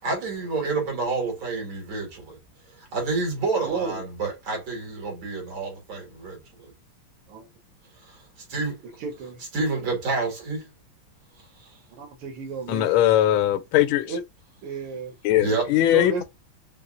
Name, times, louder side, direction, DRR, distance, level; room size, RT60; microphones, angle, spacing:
voice 1, 0.0-2.4 2.8-6.7 8.1-8.2 8.5-8.9 9.5-10.7 15.4-15.7 16.2-16.3, right 3 dB, 65° right, 2.6 m, -28 dB
voice 2, 3.6-4.1 7.3-7.5 9.0-9.4 11.9-12.9 14.1-14.2 14.6-15.2 15.4-16.2, right 4 dB, 85° right, 1.8 m, -33 dB
voice 3, 12.7-14.1 15.2-16.2, left 12 dB, 75° left, 1.3 m, -20 dB
5.3 x 2.4 x 2.4 m
omnidirectional pair, 2.4 m